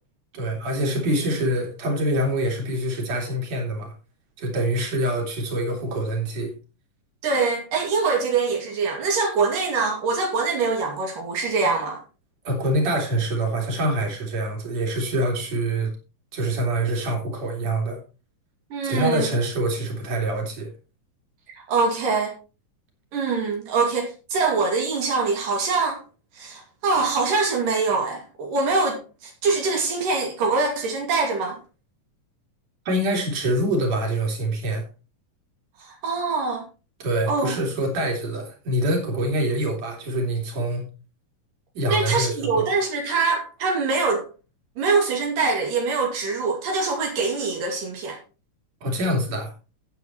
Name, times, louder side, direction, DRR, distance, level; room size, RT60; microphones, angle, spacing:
voice 1, 0.3-3.9 4.4-6.5 12.4-15.9 16.3-18.0 18.8-20.7 32.9-34.8 37.0-40.8 41.7-42.7 48.8-49.5, right 1 dB, 55° right, 4.5 m, -25 dB
voice 2, 7.2-12.0 18.7-19.3 21.7-22.4 23.1-26.0 26.4-31.6 35.9-36.7 37.3-37.5 41.9-44.3 44.8-48.2, right 4 dB, 85° right, 4.1 m, -24 dB
15.0 x 9.2 x 3.1 m
omnidirectional pair, 3.7 m